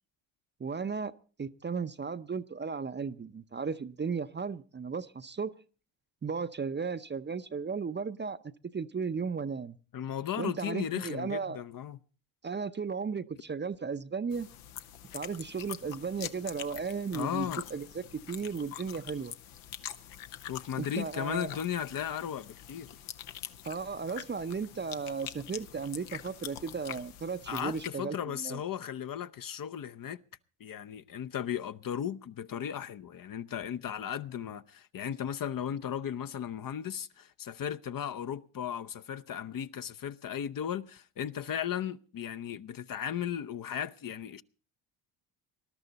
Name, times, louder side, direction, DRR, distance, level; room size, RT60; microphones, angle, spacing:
voice 1, 0.6-1.1 1.4-5.5 6.2-8.4 8.7-9.8 10.4-11.6 12.4-14.5 15.1-19.3 20.8-21.6 23.6-28.6, right 5 dB, 25° right, 0.6 m, -35 dB
voice 2, 9.9-12.0 17.1-17.6 20.5-22.9 27.5-30.2 30.6-44.4, left 9 dB, 45° left, 0.7 m, -36 dB
sound 1, 14.3-27.9, left 11 dB, 85° left, 1.1 m, -45 dB
20.5 x 12.0 x 4.1 m
supercardioid pair, 75°, 48 cm